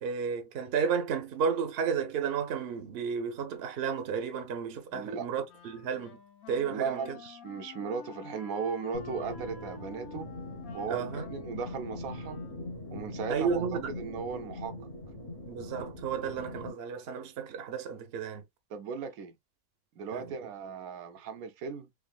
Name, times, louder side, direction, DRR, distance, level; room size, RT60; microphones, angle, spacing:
voice 1, 0.0-6.2 6.5-7.2 10.9-11.3 13.3-13.9 15.5-18.4 20.1-20.3, right 6 dB, 50° right, 0.9 m, -32 dB
voice 2, 4.9-5.3 6.7-10.3 10.7-12.4 12.9-14.7 18.7-19.4 20.0-21.9, right 5 dB, 80° right, 1.1 m, -37 dB
Wind instrument woodwind instrument, 5.5-12.8, left 8 dB, 80° left, 1.4 m, -49 dB
sound 1, 8.9-16.7, left 1 dB, 30° left, 0.8 m, -42 dB
3.6 x 3.4 x 2.3 m
omnidirectional pair, 1.5 m